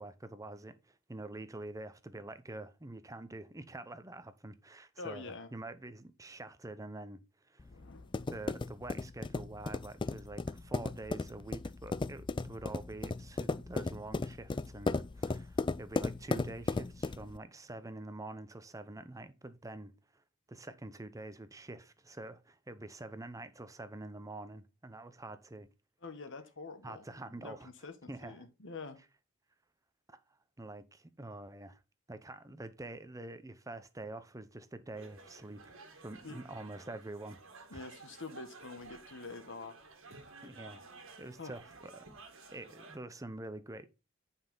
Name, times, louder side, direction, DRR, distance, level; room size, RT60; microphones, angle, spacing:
voice 1, 0.0-7.7 8.3-20.2 20.5-25.7 26.8-27.7 28.1-28.5 30.1-30.2 30.6-31.8 32.1-37.4 40.4-40.8 41.2-42.1 42.5-43.9, right 2 dB, 15° right, 0.7 m, -46 dB
voice 2, 5.0-5.5 7.7-8.3 26.0-29.0 36.2-36.7 37.7-39.8 41.4-41.5, left 3 dB, 60° left, 1.4 m, -46 dB
sound 1, 7.6-17.4, left 3 dB, 20° left, 0.4 m, -36 dB
sound 2, 34.9-43.0, right 3 dB, 65° right, 1.8 m, -54 dB
9.5 x 5.5 x 3.9 m
head